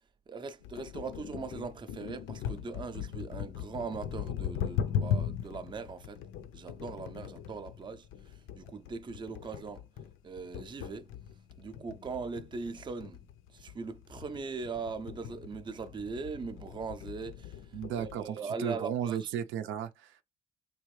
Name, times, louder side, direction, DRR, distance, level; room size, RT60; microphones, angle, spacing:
voice 1, 0.3-6.2 6.5-9.8 10.2-11.1 11.6-13.2 13.5-19.3, right 4 dB, 25° right, 0.4 m, -40 dB
sound 1, 0.6-18.2, left 8 dB, 80° left, 0.5 m, -39 dB
voice 2, 17.7-20.2, right 9 dB, 85° right, 0.5 m, -35 dB
3.4 x 2.6 x 3.1 m
cardioid pair, 90°, 20 cm